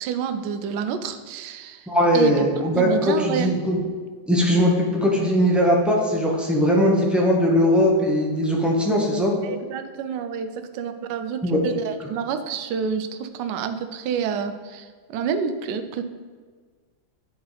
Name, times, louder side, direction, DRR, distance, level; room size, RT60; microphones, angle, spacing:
voice 1, 0.0-1.9 2.1-2.3 2.7-3.5 9.4-16.0, right 7 dB, 75° right, 8 dB, 1.1 m, -28 dB
voice 2, 1.9-3.8 4.3-9.3 11.4-11.6, equal, ahead, -3 dB, 0.4 m, -20 dB
8.8 x 3.7 x 4.0 m, 1.5 s
omnidirectional pair, 2.0 m